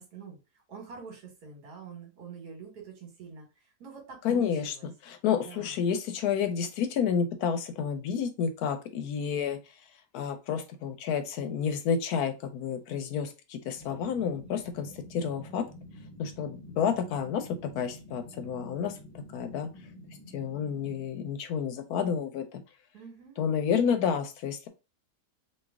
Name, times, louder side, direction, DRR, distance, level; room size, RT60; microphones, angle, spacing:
voice 1, 0.0-4.9 5.3-5.8 22.9-23.4, right 5 dB, 70° right, 1 dB, 1.7 m, -46 dB
voice 2, 4.2-9.8 10.1-15.6 16.2-19.7 20.3-22.6 23.4-24.7, left 7 dB, 75° left, 8 dB, 1.0 m, -30 dB
sound 1, 13.8-21.1, left 1 dB, 50° left, 0.5 m, -49 dB
3.1 x 2.6 x 3.4 m, 0.29 s
omnidirectional pair, 1.7 m